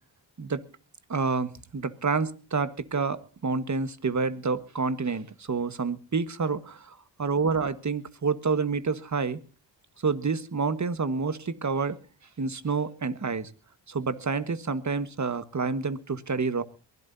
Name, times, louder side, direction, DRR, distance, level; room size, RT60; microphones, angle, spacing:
voice 1, 1.1-9.4 10.0-12.0 12.4-13.5 13.9-16.6, right 4 dB, 40° right, 13 dB, 1.5 m, -28 dB
22.5 x 16.5 x 2.7 m, 0.35 s
cardioid pair, 65°, 45 cm